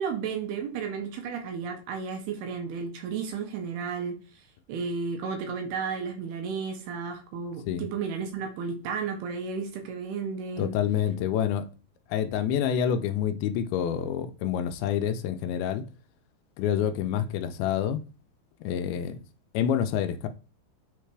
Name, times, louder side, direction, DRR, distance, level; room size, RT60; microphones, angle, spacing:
voice 1, 0.0-10.8, right 5 dB, 80° right, 2.7 m, -33 dB
voice 2, 10.6-11.7 12.1-15.8 16.6-18.0 18.6-19.2 19.5-20.3, left 9 dB, 80° left, 2.3 m, -27 dB
9.2 x 3.3 x 3.2 m
omnidirectional pair, 4.6 m